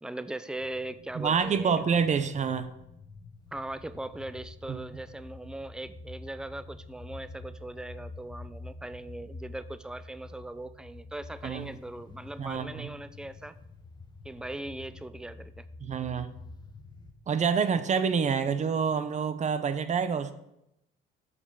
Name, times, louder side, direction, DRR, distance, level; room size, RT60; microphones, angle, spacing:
voice 1, 0.0-1.8 3.5-13.6 14.2-15.7, right 1 dB, 5° right, 14 dB, 0.4 m, -39 dB
sound 1, 0.6-17.1, left 3 dB, 20° left, 0.9 m, -48 dB
voice 2, 1.1-2.7 4.7-4.8 11.4-11.7 12.4-12.9 15.8-16.3 17.3-20.3, right 6 dB, 35° right, 12 dB, 0.8 m, -27 dB
6.8 x 5.8 x 6.9 m, 0.83 s
cardioid pair, 120°, 21 cm